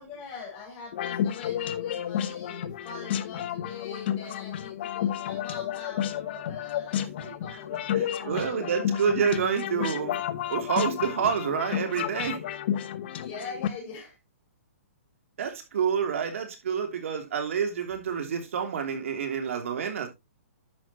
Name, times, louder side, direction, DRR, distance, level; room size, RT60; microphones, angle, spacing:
voice 1, 0.0-9.1 13.2-14.2, left 5 dB, 25° left, 5.9 m, -43 dB
sound 1, 0.9-13.7, left 10 dB, 45° left, 1.1 m, -31 dB
voice 2, 8.0-10.2 10.5-12.4 15.4-20.1, right 7 dB, 65° right, 3.0 m, -28 dB
10.5 x 7.6 x 2.9 m
hypercardioid pair, 155°, 8 cm